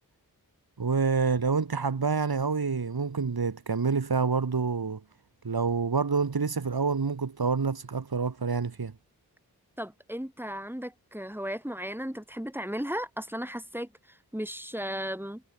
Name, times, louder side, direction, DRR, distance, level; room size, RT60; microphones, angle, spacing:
voice 1, 0.8-5.0 5.4-8.9, right 5 dB, 75° right, 3.8 m, -27 dB
voice 2, 9.8-15.4, equal, 5° right, 6.5 m, -35 dB
cardioid pair, 40°, 38 cm